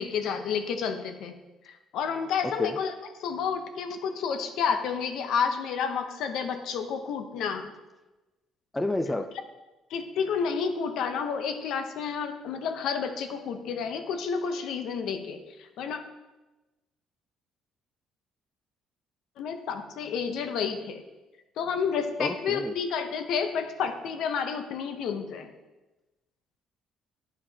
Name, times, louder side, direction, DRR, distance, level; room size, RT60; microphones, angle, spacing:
voice 1, 0.0-1.4 1.7-2.9 3.2-7.7 9.9-16.0 19.4-21.0 21.6-25.5, left 6 dB, 70° left, 7 dB, 0.6 m, -30 dB
voice 2, 2.4-2.8 8.7-9.3 22.2-22.7, left 1 dB, 10° left, 9 dB, 0.3 m, -30 dB
9.5 x 4.9 x 2.8 m, 1.1 s
cardioid pair, 115°, 0 cm